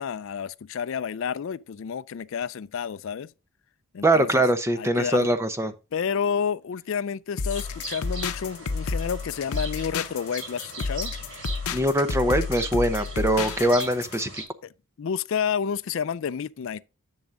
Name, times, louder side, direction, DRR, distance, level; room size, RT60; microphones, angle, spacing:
voice 1, 0.0-3.3 3.9-4.4 4.8-5.3 5.9-11.1 15.0-16.8, left 7 dB, 60° left, 0.4 m, -30 dB
voice 2, 4.0-5.7 11.7-14.3, right 1 dB, 10° right, 0.7 m, -22 dB
sound 1, 7.4-14.2, left 4 dB, 85° left, 0.7 m, -31 dB
sound 2, 7.5-14.4, right 3 dB, 60° right, 4.5 m, -40 dB
10.5 x 7.1 x 2.5 m
head